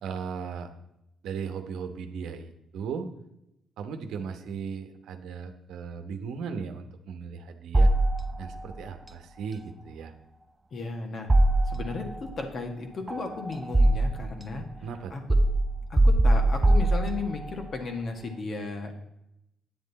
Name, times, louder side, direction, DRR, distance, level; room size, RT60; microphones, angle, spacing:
voice 1, 0.0-0.7 1.2-3.1 3.8-7.9 8.4-10.1 14.8-15.1, right 6 dB, 80° right, 7 dB, 1.0 m, -37 dB
sound 1, 7.7-8.6 11.3-12.2 13.1-14.4 15.3-17.5, right 1 dB, 20° right, 0.5 m, -22 dB
voice 2, 10.7-11.3 11.7-14.6 15.1-15.2 15.9-19.0, left 3 dB, 50° left, 4 dB, 1.7 m, -35 dB
9.5 x 7.6 x 4.1 m, 0.84 s
cardioid pair, 90°, 0 cm